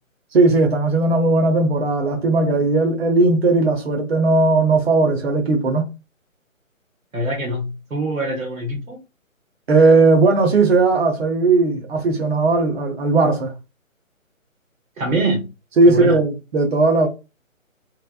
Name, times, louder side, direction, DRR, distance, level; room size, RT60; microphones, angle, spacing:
voice 1, 0.3-5.9 9.7-13.5 15.8-17.1, right 3 dB, 50° right, 0.9 m, -17 dB
voice 2, 7.1-9.0 15.0-15.5 15.9-16.2, right 1 dB, 85° right, 1.3 m, -24 dB
3.3 x 2.9 x 2.3 m
figure-of-eight pair, 160°, 41 cm